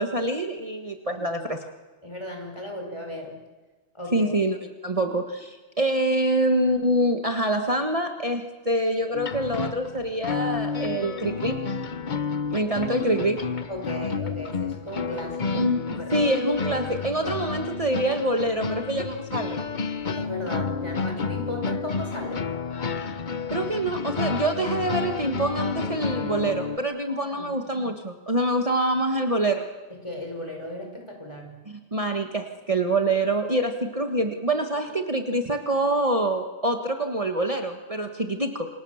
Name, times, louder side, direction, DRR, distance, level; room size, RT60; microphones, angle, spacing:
voice 1, 0.0-1.6 4.1-4.6 4.8-11.6 12.5-13.4 15.5-15.8 16.1-19.6 23.0-23.2 23.5-29.7 31.7-38.7, right 1 dB, 30° right, 4 dB, 1.7 m, -25 dB
voice 2, 1.1-1.4 2.0-3.4 3.9-4.3 13.7-15.6 16.0-16.2 20.2-22.5 27.1-27.5 30.0-31.6, left 1 dB, 25° left, 3 dB, 5.8 m, -36 dB
sound 1, 9.1-26.8, left 5 dB, 45° left, 1.1 m, -30 dB
29.0 x 26.5 x 7.3 m, 1.2 s
omnidirectional pair, 1.1 m